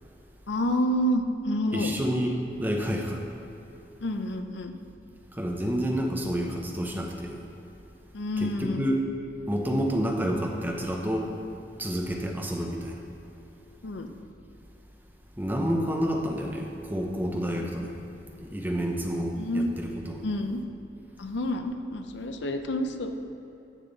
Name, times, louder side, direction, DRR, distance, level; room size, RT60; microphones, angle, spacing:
voice 1, 0.5-1.9 4.0-4.7 8.1-8.8 13.8-14.1 19.4-19.7 20.2-20.6 21.2-23.1, left 1 dB, 75° left, 6 dB, 0.6 m, -28 dB
voice 2, 1.7-3.2 5.4-7.4 8.4-9.0 9.5-11.3 11.8-12.9 15.4-17.9 18.4-20.2, equal, 10° right, 1 dB, 0.7 m, -29 dB
10.0 x 7.4 x 4.0 m, 2.9 s
head